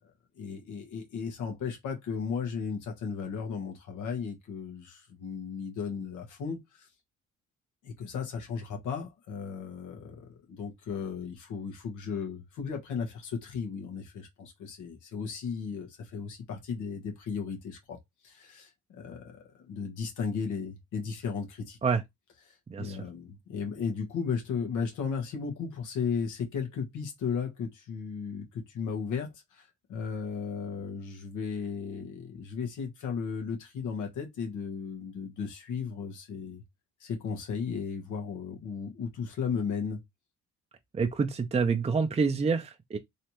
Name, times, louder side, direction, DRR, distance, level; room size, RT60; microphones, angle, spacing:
voice 1, 0.4-6.9 7.8-18.0 18.2-21.8 22.5-36.6 37.0-40.0, left 6 dB, 85° left, 1.3 m, -35 dB
voice 2, 40.9-43.0, right 5 dB, 20° right, 0.5 m, -27 dB
3.2 x 2.8 x 3.0 m
cardioid pair, 90°, 30 cm